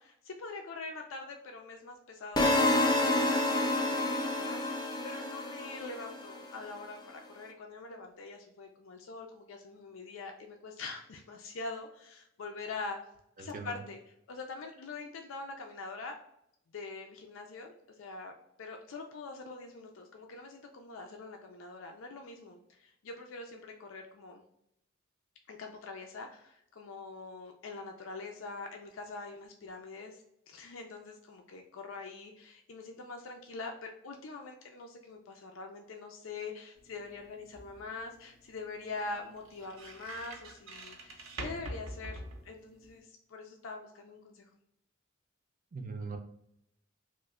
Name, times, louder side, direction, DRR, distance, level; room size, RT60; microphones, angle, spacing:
voice 1, 0.0-13.0 13.4-14.0 14.3-16.1 16.7-17.7 18.0-18.3 18.6-24.4 25.5-44.5, left 3 dB, 85° left, 3 dB, 0.4 m, -44 dB
sound 1, 2.4-6.4, left 2 dB, 20° left, 0.4 m, -29 dB
voice 2, 13.4-13.8 45.7-46.2, right 4 dB, 45° right, 5 dB, 0.5 m, -40 dB
sound 2, 36.7-43.0, right 1 dB, 85° right, 0.7 m, -46 dB
3.1 x 2.1 x 3.5 m, 0.76 s
head